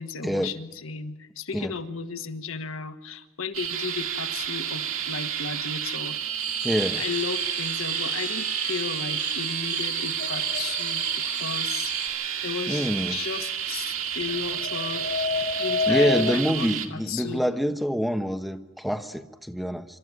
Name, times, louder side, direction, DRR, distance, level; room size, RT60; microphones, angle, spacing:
voice 1, 0.0-6.2 7.0-11.0 11.3-11.9 12.4-17.4, left 5 dB, 75° left, 8 dB, 1.4 m, -35 dB
sound 1, 3.5-16.9, right 9 dB, 80° right, 2.4 m, -31 dB
sound 2, 6.4-12.1, right 5 dB, 40° right, 5.0 m, -32 dB
voice 2, 6.6-7.0 12.7-13.2 15.9-19.8, equal, ahead, 6 dB, 1.1 m, -26 dB
sound 3, 10.2-10.9 14.2-16.4, left 4 dB, 45° left, 1.1 m, -28 dB
26.5 x 13.0 x 9.7 m, 1.1 s
head